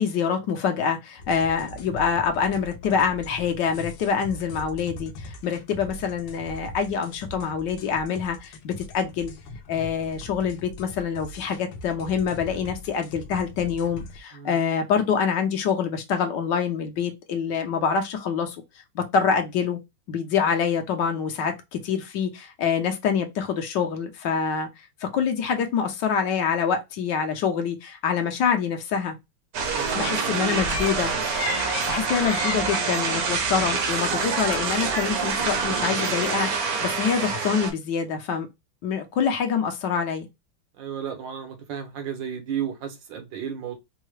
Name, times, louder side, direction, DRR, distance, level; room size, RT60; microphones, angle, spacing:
voice 1, 0.0-9.3 9.7-18.6 18.9-19.8 20.1-24.7 25.0-29.2 29.9-31.1 31.9-38.5 38.8-40.3, left 6 dB, 70° left, 1.3 m, -26 dB
sound 1, 1.2-14.2, left 2 dB, 90° left, 1.4 m, -41 dB
sound 2, 29.5-37.7, right 5 dB, 60° right, 1.1 m, -26 dB
voice 2, 29.7-30.5 40.8-43.8, right 8 dB, 75° right, 1.6 m, -33 dB
sound 3, 30.4-35.8, left 3 dB, 45° left, 0.7 m, -36 dB
4.6 x 2.1 x 3.1 m
omnidirectional pair, 2.1 m